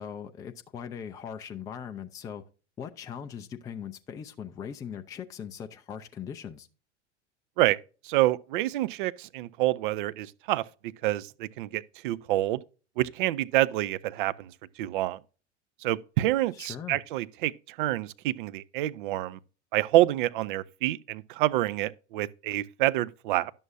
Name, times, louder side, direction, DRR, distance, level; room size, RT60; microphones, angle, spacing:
voice 1, 0.0-2.4 2.8-6.7 16.5-17.0, left 8 dB, 10° left, 0.4 m, -40 dB
voice 2, 8.0-12.6 13.0-14.5 14.8-15.2 15.8-19.4 19.7-23.5, right 15 dB, 45° right, 0.5 m, -27 dB
11.0 x 7.0 x 2.5 m
figure-of-eight pair, 85°, 36 cm